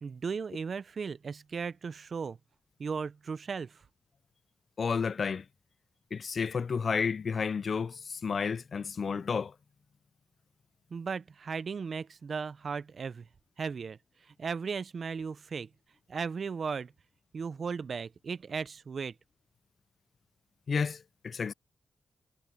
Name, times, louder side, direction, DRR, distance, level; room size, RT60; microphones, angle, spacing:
voice 1, 0.0-2.4 2.8-3.8 10.9-13.3 13.6-14.0 14.4-15.7 16.1-16.9 17.3-19.1, right 5 dB, 55° right, 0.6 m, -36 dB
voice 2, 4.8-5.5 6.1-9.5 20.7-21.5, left 5 dB, 55° left, 0.4 m, -31 dB
cardioid pair, 75°, 0 cm